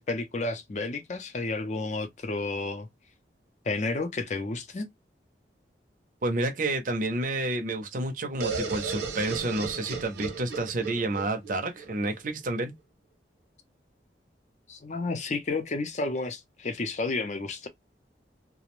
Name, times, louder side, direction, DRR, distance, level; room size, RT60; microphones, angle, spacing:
voice 1, 0.0-2.9 3.6-4.9 14.7-17.7, left 3 dB, 40° left, 0.5 m, -31 dB
voice 2, 6.2-12.7, right 2 dB, 50° right, 0.6 m, -30 dB
sound 1, 8.4-12.2, right 4 dB, 85° right, 0.7 m, -35 dB
2.4 x 2.1 x 2.9 m
head